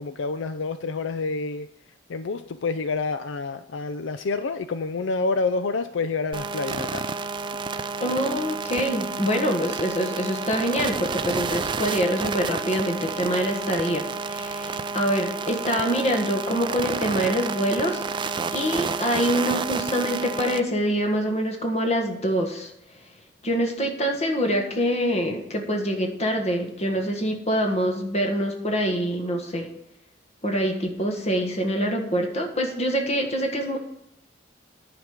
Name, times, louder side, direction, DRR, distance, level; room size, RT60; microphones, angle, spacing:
voice 1, 0.0-1.7 2.1-7.0, left 4 dB, 75° left, 10 dB, 0.5 m, -28 dB
sound 1, 6.3-20.6, right 4 dB, 25° right, 0.4 m, -30 dB
voice 2, 8.0-22.7 23.4-29.7 30.4-33.8, equal, 35° left, 3 dB, 1.6 m, -25 dB
10.5 x 5.2 x 6.2 m, 0.80 s
head